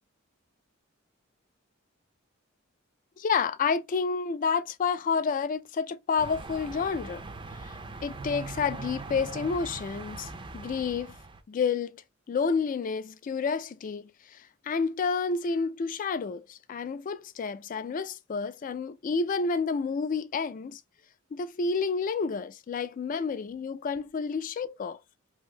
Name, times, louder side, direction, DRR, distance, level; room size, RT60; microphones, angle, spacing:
voice 1, 3.2-7.2 7.6-7.7 8.0-11.1 11.5-12.0 12.3-20.8 21.3-25.0, left 5 dB, 40° left, 0.3 m, -30 dB
sound 1, 6.2-11.4, right 3 dB, 25° right, 0.4 m, -41 dB
2.8 x 2.6 x 3.1 m
head